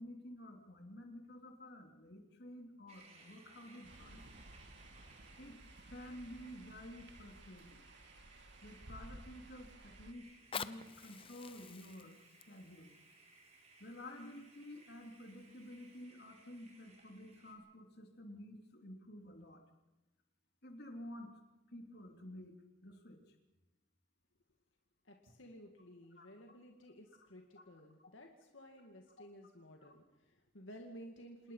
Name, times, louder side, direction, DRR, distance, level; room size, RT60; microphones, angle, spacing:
voice 1, 0.0-4.3 5.4-7.9 8.6-12.2 12.5-12.9 13.8-19.6 20.6-21.4 21.7-23.3 26.1-26.3 27.5-27.6 28.0-28.1 29.8-29.9, left 1 dB, 55° left, 3 dB, 3.2 m, -51 dB
sound 1, 2.9-17.5, right 3 dB, 35° right, 4.4 m, -63 dB
sound 2, 3.8-10.1, right 1 dB, 60° right, 1.5 m, -56 dB
Fire, 10.3-15.2 15.9-16.0, left 6 dB, 25° left, 0.7 m, -49 dB
voice 2, 25.0-31.5, equal, 80° left, 2 dB, 2.2 m, -55 dB
27.5 x 20.0 x 5.7 m, 1.0 s
head